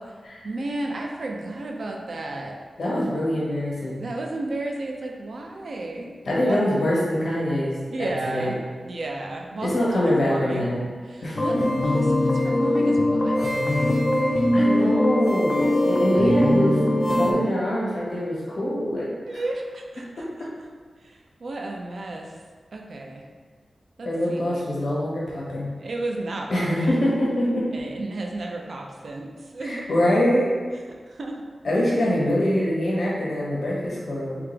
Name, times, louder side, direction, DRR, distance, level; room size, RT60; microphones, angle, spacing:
voice 1, 0.4-2.6 4.0-6.7 7.9-8.6 8.8-10.7 11.1-13.7 16.1-16.3 17.1-17.5 19.2-20.2 21.0-22.3 22.7-23.2 24.0-24.6 25.8-27.3 27.7-30.0 31.1-31.4, right 2 dB, 65° right, 1 dB, 0.5 m, -33 dB
voice 2, 2.8-4.0 6.2-8.5 9.6-10.8 11.2-11.4 14.5-19.1 24.0-25.7 26.5-27.6 29.6-30.5 31.6-34.4, left 1 dB, 70° left, -6 dB, 1.2 m, -24 dB
sound 1, 11.4-17.3, left 1 dB, 35° left, 0.4 m, -21 dB
3.4 x 2.9 x 3.4 m, 1.5 s
wide cardioid pair, 100°, 0 cm